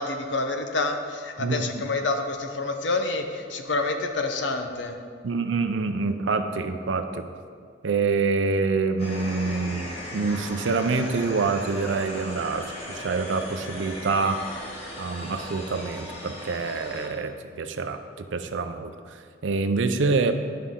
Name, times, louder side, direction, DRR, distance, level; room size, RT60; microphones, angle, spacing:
voice 1, 0.0-4.9, left 3 dB, 70° left, 5 dB, 0.7 m, -28 dB
voice 2, 1.4-1.8 5.2-7.3 7.8-14.4 15.0-19.2 19.4-20.3, right 4 dB, 80° right, 8 dB, 0.5 m, -26 dB
sound 1, 9.0-17.1, left 1 dB, 35° left, 1.5 m, -37 dB
11.5 x 5.5 x 3.7 m, 2.1 s
head